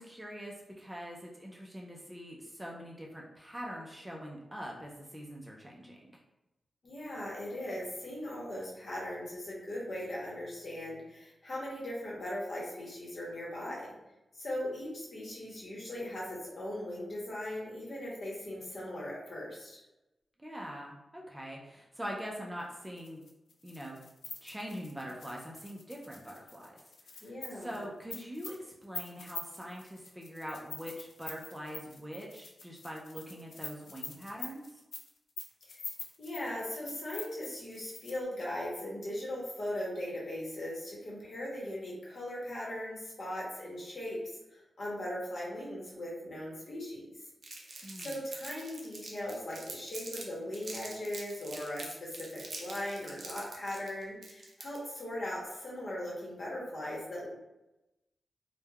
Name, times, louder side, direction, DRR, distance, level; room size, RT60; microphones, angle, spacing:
voice 1, 0.0-6.2 20.4-23.2 23.6-24.0 24.4-26.8 27.1-34.8 47.8-48.2, equal, 10° right, -2 dB, 0.4 m, -43 dB
voice 2, 6.8-13.9 14.3-19.8 27.2-27.8 35.7-35.8 36.2-47.0 47.6-57.3, left 1 dB, 55° left, -4 dB, 0.9 m, -39 dB
sound 1, 22.9-38.2, left 4 dB, 90° left, 0.4 m, -45 dB
Crumpling crinkling, 47.4-50.2 50.5-55.0, right 3 dB, 65° right, 0.5 m, -45 dB
3.1 x 2.1 x 2.2 m, 0.96 s
wide cardioid pair, 90°, 0 cm